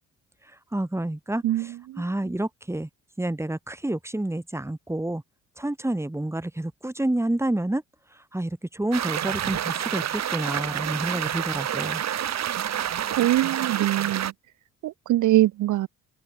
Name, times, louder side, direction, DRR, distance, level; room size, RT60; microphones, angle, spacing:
voice 1, 0.7-1.4 2.0-2.9 3.2-5.2 5.6-7.8 8.3-12.0, right 1 dB, 10° right, 5.0 m, -29 dB
voice 2, 1.4-2.0 13.2-14.3 14.8-15.9, right 15 dB, 75° right, 1.1 m, -23 dB
sound 1, 8.9-14.3, right 10 dB, 60° right, 2.6 m, -28 dB
cardioid pair, 90°, 30 cm